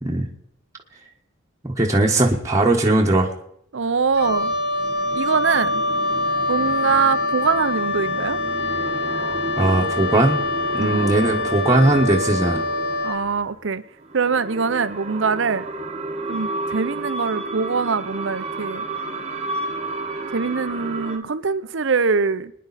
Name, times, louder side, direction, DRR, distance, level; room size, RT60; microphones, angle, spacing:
voice 1, 1.6-3.3 9.6-10.4 10.7-12.6, right 2 dB, 15° right, -2 dB, 1.4 m, -19 dB
voice 2, 3.7-4.5 5.1-5.8 6.5-8.4 10.8-11.1 13.0-13.8 14.1-15.7 16.3-18.9 20.3-22.5, right 5 dB, 65° right, 14 dB, 0.6 m, -23 dB
Wind instrument woodwind instrument, 4.1-13.3, left 2 dB, 55° left, 1.1 m, -24 dB
sound 1, 4.2-13.4 14.1-21.2, right 2 dB, 30° right, 1.1 m, -32 dB
26.0 x 10.5 x 4.2 m, 0.72 s
head